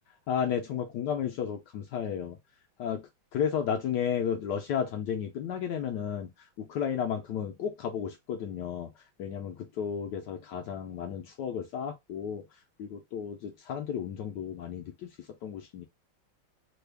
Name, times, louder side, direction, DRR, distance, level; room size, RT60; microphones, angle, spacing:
voice 1, 0.3-2.4 2.8-6.3 6.6-8.9 9.2-12.4 12.8-15.1 15.4-15.9, left 8 dB, 75° left, 1.0 m, -33 dB
3.3 x 2.2 x 3.3 m
omnidirectional pair, 2.2 m